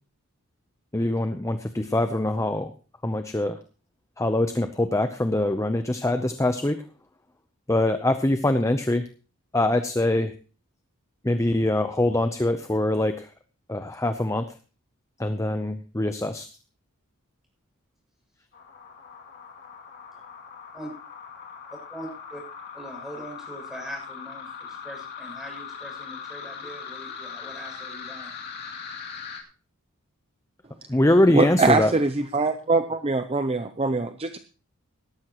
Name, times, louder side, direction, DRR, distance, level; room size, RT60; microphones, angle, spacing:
voice 1, 0.9-2.7 3.0-3.6 4.2-6.8 7.7-9.1 9.5-10.3 11.2-13.3 13.7-14.5 15.2-16.5 30.9-31.9, left 1 dB, 15° left, 8 dB, 0.7 m, -23 dB
sound 1, 18.5-29.4, left 6 dB, 45° left, 2.6 m, -40 dB
voice 2, 21.7-22.4 22.7-28.3, equal, ahead, 0 dB, 6.8 m, -41 dB
voice 3, 31.3-34.4, right 3 dB, 25° right, 9 dB, 0.6 m, -23 dB
18.0 x 13.0 x 3.0 m, 0.36 s
head